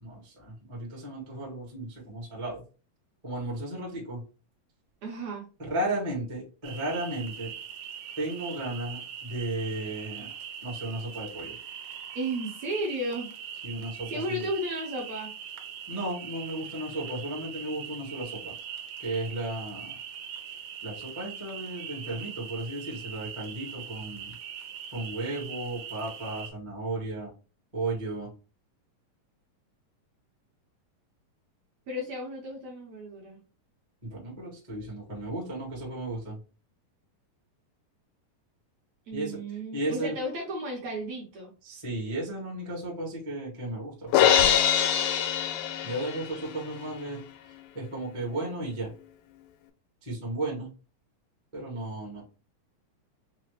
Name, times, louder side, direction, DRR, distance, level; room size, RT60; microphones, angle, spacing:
voice 1, 0.0-2.6 3.2-4.2 5.6-7.5 8.2-10.3 10.6-11.6 13.6-14.5 15.9-18.5 19.0-20.0 20.8-24.3 24.9-27.3 27.7-28.3 34.0-36.4 39.1-39.4 39.7-40.1 41.6-44.3 45.8-47.2 47.7-48.9 50.0-50.7 51.5-52.2, right 1 dB, 45° right, -4 dB, 0.4 m, -34 dB
voice 2, 5.0-5.4 12.2-13.3 14.1-15.3 31.9-33.4 39.1-41.5, right 1 dB, 70° right, -2 dB, 1.8 m, -34 dB
sound 1, 6.6-26.5, right 8 dB, 85° right, 2.4 m, -41 dB
Crash cymbal, 44.1-46.4, left 10 dB, 90° left, 2.3 m, -23 dB
5.8 x 2.1 x 3.2 m, 0.35 s
omnidirectional pair, 4.0 m